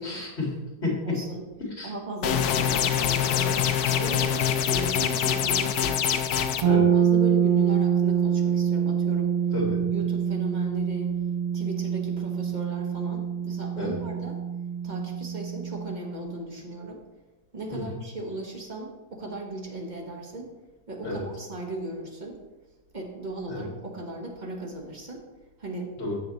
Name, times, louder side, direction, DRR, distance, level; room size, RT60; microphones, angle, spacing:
voice 1, 0.0-1.2 1.6-1.9 6.6-6.8 9.5-9.8 13.8-14.0 17.7-18.0 21.0-21.2 23.5-23.7 26.0-26.2, left 2 dB, 40° left, -3 dB, 2.3 m, -31 dB
voice 2, 1.0-1.4 1.8-3.6 4.0-6.2 6.7-9.3 9.9-11.1 11.5-14.4 14.8-17.0 17.5-20.5 20.9-22.4 22.9-25.2 25.6-25.9, right 2 dB, 30° right, 0 dB, 1.3 m, -37 dB
sound 1, 2.2-6.6, left 9 dB, 75° left, 1.1 m, -24 dB
sound 2, 6.6-16.4, right 8 dB, 75° right, 1.5 m, -25 dB
7.3 x 6.8 x 4.0 m, 1.1 s
omnidirectional pair, 1.7 m